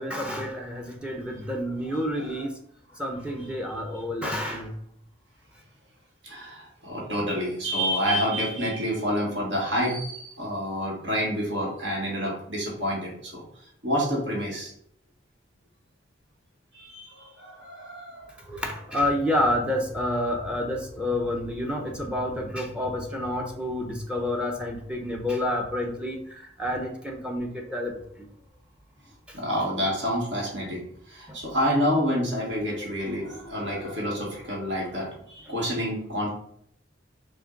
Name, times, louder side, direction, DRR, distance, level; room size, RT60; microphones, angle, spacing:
voice 1, 0.0-2.5 3.0-4.7 18.5-27.9 32.6-32.7 33.3-33.5, left 1 dB, 5° right, 2 dB, 0.6 m, -29 dB
voice 2, 6.2-13.4 13.8-14.7 16.7-18.3 29.3-36.3, equal, 65° right, -3 dB, 1.5 m, -28 dB
6.0 x 2.2 x 3.8 m, 0.67 s
head